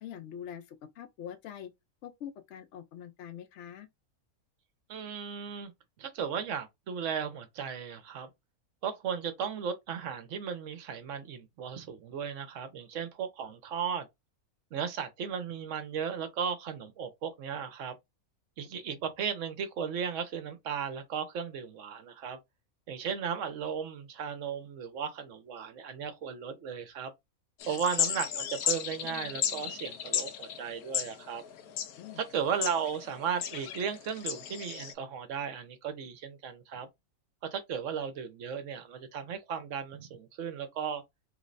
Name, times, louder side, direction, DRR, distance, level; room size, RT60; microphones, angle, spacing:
voice 1, 0.0-1.7 2.0-3.9 27.7-27.8 32.0-32.2, left 9 dB, 65° left, 0.8 m, -44 dB
voice 2, 4.9-5.7 6.0-8.3 8.8-14.1 14.7-17.9 18.6-22.4 22.9-27.1 27.7-31.4 32.2-36.9 37.5-41.0, right 7 dB, 65° right, 0.9 m, -35 dB
sound 1, 27.6-34.9, left 9 dB, 90° left, 1.1 m, -35 dB
3.2 x 3.0 x 2.5 m
omnidirectional pair, 1.5 m